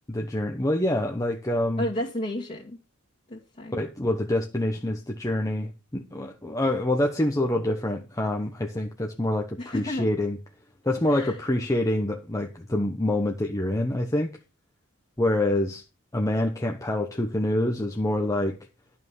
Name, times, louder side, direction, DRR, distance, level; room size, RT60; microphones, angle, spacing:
voice 1, 0.1-1.9 3.7-10.4 10.8-14.3 15.2-15.8 16.1-18.6, left 1 dB, 15° left, 1.0 m, -26 dB
voice 2, 1.8-2.8 3.3-3.8 9.6-10.1 11.1-11.3, left 1 dB, 30° left, 2.2 m, -32 dB
12.0 x 5.5 x 6.4 m
head